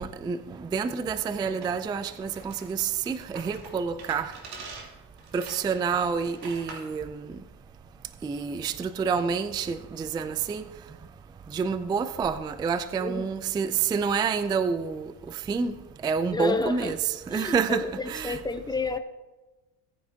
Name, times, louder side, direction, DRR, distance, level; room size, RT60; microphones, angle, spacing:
voice 1, 0.0-4.4 5.3-7.4 8.2-10.7 11.5-15.8 16.0-18.4, right 6 dB, 10° right, 0.3 m, -28 dB
sound 1, 1.6-7.0, right 3 dB, 55° right, 3.1 m, -45 dB
voice 2, 13.0-13.3 16.3-17.0 17.3-19.0, left 3 dB, 10° left, 0.9 m, -30 dB
17.0 x 9.7 x 2.8 m
supercardioid pair, 85°, 47 cm